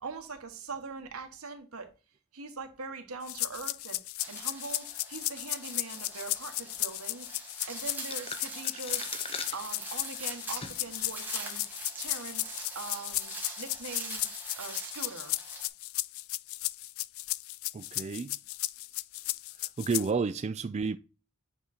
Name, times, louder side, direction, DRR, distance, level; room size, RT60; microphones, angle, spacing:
voice 1, 0.0-1.9 2.3-4.0 4.3-7.3 7.7-9.1 9.5-11.6 12.0-14.3 14.6-15.4, right 4 dB, 80° right, 1.4 m, -42 dB
sound 1, 3.3-20.1, left 18 dB, 65° left, 0.3 m, -35 dB
sound 2, 4.2-15.7, right 3 dB, 10° right, 1.7 m, -43 dB
sound 3, 8.0-11.0 11.4-11.5 12.3-12.7, left 5 dB, 25° left, 0.7 m, -42 dB
voice 2, 17.7-18.4 19.5-21.0, right 4 dB, 30° right, 0.3 m, -31 dB
8.4 x 3.8 x 4.3 m
head